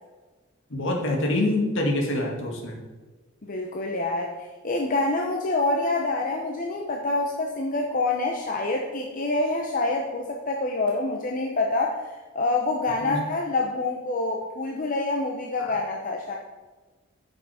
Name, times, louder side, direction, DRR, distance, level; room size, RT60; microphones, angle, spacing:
voice 1, 0.7-2.8 13.0-13.2 15.6-15.8, left 1 dB, 65° left, 0 dB, 1.9 m, -26 dB
voice 2, 3.4-4.3 4.6-12.0 12.3-16.4, left 2 dB, 40° left, 0 dB, 0.8 m, -26 dB
8.6 x 6.6 x 4.9 m, 1.3 s
head